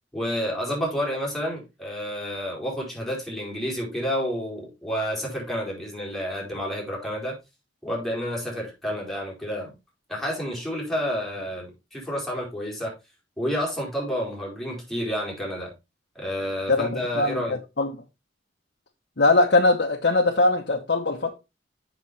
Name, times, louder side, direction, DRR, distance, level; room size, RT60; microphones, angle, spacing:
voice 1, 0.1-7.4 7.8-9.7 10.1-12.9 13.4-15.7 16.1-17.6, equal, ahead, 4.4 m, -30 dB
voice 2, 16.7-17.9 19.2-21.3, left 2 dB, 65° left, 1.2 m, -21 dB
7.8 x 6.2 x 4.1 m
head